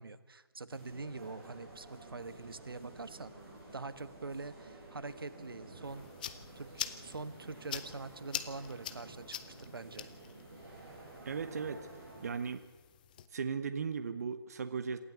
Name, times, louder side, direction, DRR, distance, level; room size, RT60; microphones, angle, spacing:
voice 1, 0.0-3.3 3.7-6.1 6.5-10.1, right 3 dB, 65° right, 14 dB, 1.4 m, -44 dB
sound 1, 0.7-12.3, right 2 dB, 20° right, 7.5 m, -52 dB
sound 2, 5.8-13.3, left 10 dB, 20° left, 0.9 m, -45 dB
voice 2, 11.2-11.9 12.2-12.6 13.3-15.0, right 5 dB, 40° right, 10 dB, 1.2 m, -37 dB
27.0 x 14.0 x 8.2 m, 1.3 s
figure-of-eight pair, 155°, 13 cm